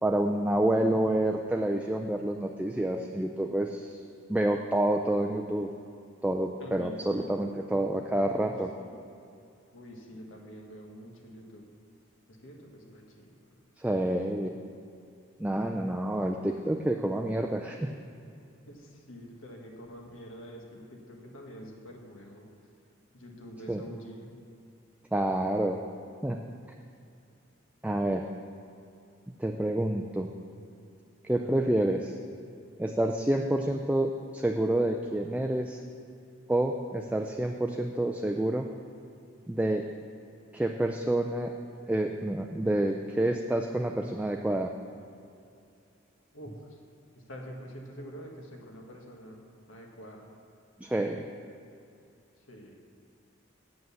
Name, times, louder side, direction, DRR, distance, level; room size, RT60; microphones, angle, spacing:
voice 1, 0.0-4.0 4.3-5.7 6.2-8.7 13.8-14.5 15.4-17.9 23.7-23.8 25.1-25.8 26.2-26.4 27.8-28.2 29.4-30.3 31.2-32.1 32.8-35.8 36.5-38.7 39.5-39.9 40.5-41.5 41.9-44.7 50.8-51.3, right 1 dB, 5° right, 2 dB, 0.3 m, -28 dB
voice 2, 6.6-7.3 8.4-8.5 8.8-9.0 9.7-11.6 12.3-13.4 18.7-22.5 23.1-24.3 31.4-31.5 46.3-46.8 47.1-49.4 49.7-50.3 52.5-52.7, equal, 70° left, 0 dB, 1.6 m, -46 dB
8.0 x 7.7 x 7.0 m, 2.5 s
head